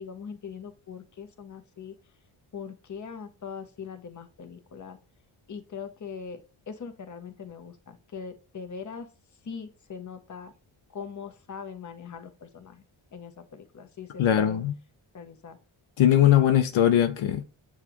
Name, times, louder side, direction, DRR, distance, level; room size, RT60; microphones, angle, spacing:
voice 1, 0.0-1.9 2.5-5.0 5.5-6.4 6.7-9.1 9.4-10.5 10.9-12.8 13.1-14.6 15.1-15.6, left 6 dB, 40° left, 0.7 m, -41 dB
voice 2, 14.2-14.8 16.0-17.4, left 11 dB, 75° left, 0.6 m, -20 dB
6.6 x 2.4 x 2.9 m
cardioid pair, 55°, 49 cm